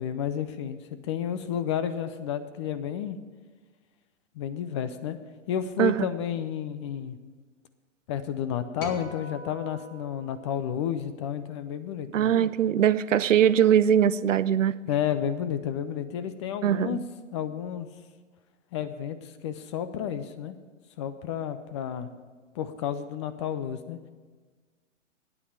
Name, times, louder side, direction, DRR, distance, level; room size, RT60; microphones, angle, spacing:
voice 1, 0.0-3.2 4.4-5.2 5.5-7.2 8.1-12.3 14.9-17.0 17.3-17.9 18.7-20.6 21.0-22.1 22.6-24.0, left 9 dB, 25° left, 11 dB, 0.5 m, -31 dB
sound 1, 8.8-11.3, left 2 dB, 45° left, 2.4 m, -44 dB
voice 2, 12.1-14.8 16.6-17.0, right 9 dB, 85° right, 17 dB, 0.6 m, -21 dB
9.5 x 8.3 x 8.5 m, 1.4 s
hypercardioid pair, 130°, 37 cm